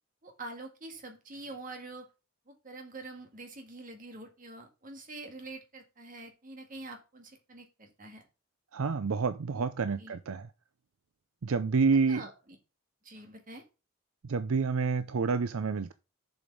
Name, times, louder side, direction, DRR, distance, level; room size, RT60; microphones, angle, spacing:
voice 1, 0.2-2.1 2.5-8.2 9.5-9.7 10.0-10.2 12.1-12.6 13.0-13.6, right 2 dB, 40° right, 1.8 m, -46 dB
voice 2, 8.7-10.5 11.4-12.2 14.2-15.9, right 4 dB, 75° right, 0.5 m, -28 dB
7.2 x 5.2 x 5.3 m
head